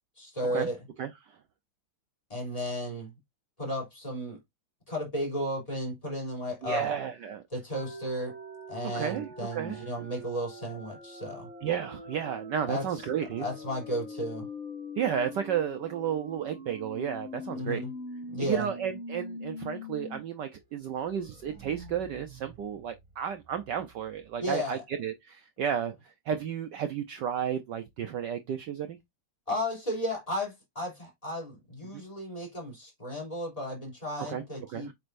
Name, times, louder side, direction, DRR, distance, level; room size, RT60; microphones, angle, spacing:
voice 1, 0.2-0.8 2.3-3.1 3.6-4.4 4.9-6.9 7.5-8.3 8.7-11.5 12.7-12.8 13.4-14.5 17.5-17.9 18.3-18.7 24.4-24.8 29.5-34.9, equal, 15° left, 3.4 m, -34 dB
voice 2, 1.0-1.4 6.6-7.4 8.8-9.8 11.6-13.5 15.0-17.8 18.4-29.0 31.9-32.0 34.2-34.4 34.7-34.9, right 8 dB, 65° right, 1.1 m, -32 dB
sound 1, 7.7-20.2 20.5-20.6 21.0-23.7, left 1 dB, 20° right, 2.2 m, -43 dB
7.8 x 5.4 x 2.5 m
omnidirectional pair, 2.4 m